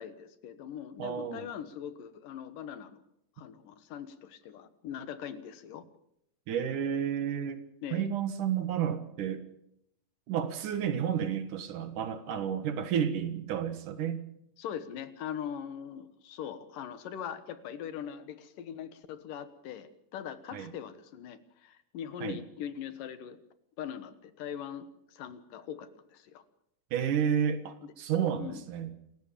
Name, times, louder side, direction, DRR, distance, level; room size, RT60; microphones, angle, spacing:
voice 1, 0.0-3.0 3.4-5.8 7.8-8.1 14.6-23.4 23.8-26.4 27.8-27.9 28.4-28.6, left 9 dB, 70° left, 12 dB, 2.8 m, -41 dB
voice 2, 1.0-1.5 6.5-7.6 7.9-9.4 10.3-14.2 20.5-20.7 22.2-22.4 26.9-28.9, right 8 dB, 65° right, 10 dB, 2.9 m, -31 dB
27.5 x 15.0 x 7.1 m, 0.75 s
omnidirectional pair, 4.2 m